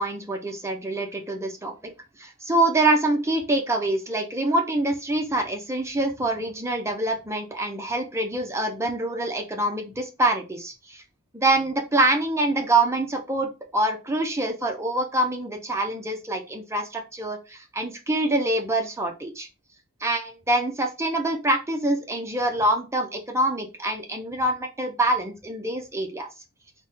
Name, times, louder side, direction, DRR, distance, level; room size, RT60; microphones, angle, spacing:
voice 1, 0.0-1.9 2.2-11.0 11.3-19.5 20.0-26.3, right 2 dB, 15° right, 3 dB, 0.5 m, -25 dB
4.1 x 2.1 x 3.5 m, 0.28 s
head